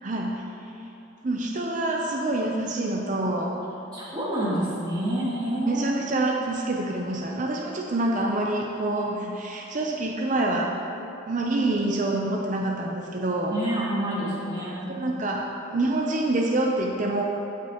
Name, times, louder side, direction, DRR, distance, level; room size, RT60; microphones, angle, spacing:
voice 1, 0.0-0.4 1.2-3.5 5.7-10.7 11.3-13.5 14.9-15.5 15.7-17.2, right 2 dB, 40° right, -1 dB, 0.6 m, -26 dB
voice 2, 3.9-5.9 13.5-15.2, right 1 dB, 20° right, -9 dB, 2.2 m, -28 dB
16.5 x 5.9 x 3.0 m, 2.8 s
head